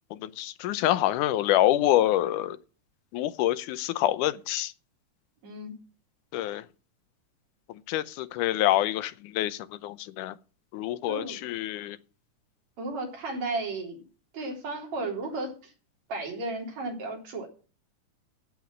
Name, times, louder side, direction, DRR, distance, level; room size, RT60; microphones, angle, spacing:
voice 1, 0.1-2.6 3.1-4.7 6.3-6.6 7.9-10.3 10.7-12.0, left 13 dB, 80° left, 2.2 m, -26 dB
voice 2, 11.1-11.4 12.8-14.0 14.3-15.7 16.1-17.5, right 2 dB, 60° right, 4.7 m, -34 dB
15.0 x 6.2 x 7.5 m
omnidirectional pair, 3.6 m